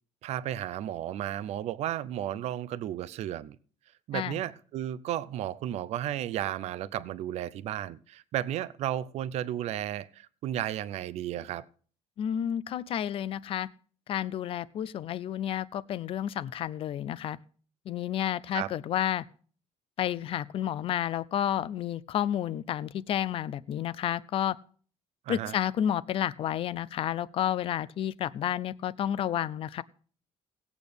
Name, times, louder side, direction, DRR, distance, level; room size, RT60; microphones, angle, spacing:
voice 1, 0.2-3.6 4.1-11.6 18.5-18.7 25.3-25.6, right 12 dB, 65° right, 17 dB, 0.5 m, -33 dB
voice 2, 12.2-13.7 14.1-17.4 17.9-19.2 20.0-24.6 25.3-29.8, left 10 dB, 50° left, 19 dB, 0.5 m, -31 dB
17.5 x 8.3 x 3.4 m, 0.43 s
cardioid pair, 135°, 12 cm